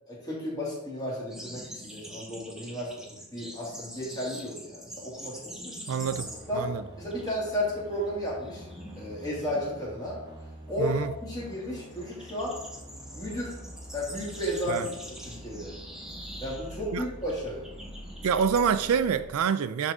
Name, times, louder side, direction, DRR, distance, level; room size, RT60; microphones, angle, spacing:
voice 1, 0.1-2.9 3.3-5.7 6.5-6.7 7.0-8.6 9.0-10.2 10.7-12.5 13.1-13.5 13.9-14.9 15.2-15.7 16.4-17.6, equal, 15° left, 2.3 m, -33 dB
sound 1, 1.3-6.7 7.0-7.3 7.6-18.7, equal, ahead, 1.0 m, -45 dB
voice 2, 5.9-6.3 6.5-6.8 10.8-11.1 14.7-14.9 16.9-17.0 18.2-19.9, right 7 dB, 70° right, 0.4 m, -26 dB
sound 2, 6.0-19.4, equal, 20° right, 1.3 m, -46 dB
10.5 x 3.9 x 3.6 m
head